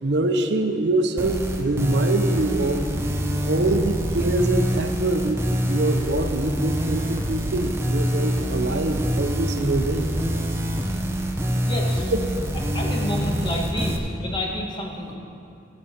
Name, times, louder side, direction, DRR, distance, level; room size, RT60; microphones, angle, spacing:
voice 1, 0.0-2.9 3.5-10.1, right 2 dB, 70° right, 7 dB, 0.7 m, -24 dB
sound 1, 1.2-14.0, equal, 15° right, 0.6 m, -25 dB
voice 2, 11.6-12.1 12.7-15.1, left 1 dB, 25° left, 0 dB, 1.3 m, -29 dB
17.5 x 6.9 x 4.3 m, 2.5 s
head